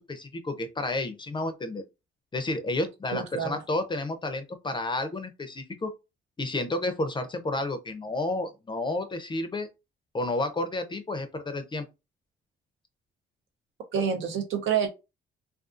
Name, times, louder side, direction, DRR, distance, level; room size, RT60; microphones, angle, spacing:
voice 1, 0.0-1.8 2.3-5.9 6.4-9.7 10.1-11.9, left 2 dB, 25° left, 0.5 m, -31 dB
voice 2, 3.1-3.6 13.9-14.9, right 7 dB, 75° right, 0.7 m, -27 dB
2.4 x 2.3 x 2.4 m
cardioid pair, 90°, 20 cm